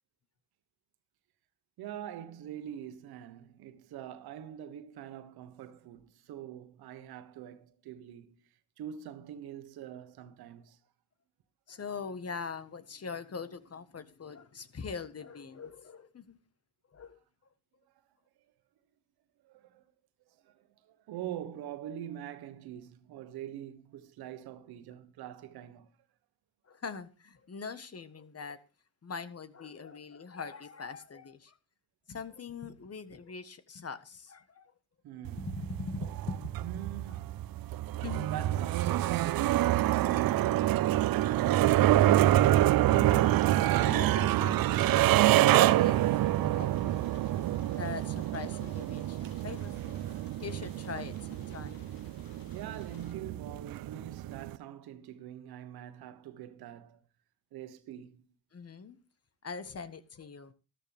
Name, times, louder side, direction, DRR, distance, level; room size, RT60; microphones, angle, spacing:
voice 1, 1.8-8.5 8.8-10.8 19.4-19.8 20.3-25.9 35.0-35.5 36.6-37.2 38.3-42.5 52.5-57.0 57.5-58.2, right 10 dB, 80° right, 1.4 m, -44 dB
voice 2, 11.7-16.4 16.9-17.2 26.7-28.6 29.0-31.6 32.1-34.7 35.4-36.5 38.0-38.4 42.9-43.3 43.8-47.1 47.8-51.9 58.5-59.0 59.4-60.5, left 5 dB, 40° left, 1.6 m, -42 dB
sound 1, 35.2-54.6, right 14 dB, 65° right, 0.6 m, -27 dB
sound 2, 44.8-53.1, left 5 dB, 70° left, 2.3 m, -56 dB
13.5 x 12.5 x 3.6 m
supercardioid pair, 65°, 37 cm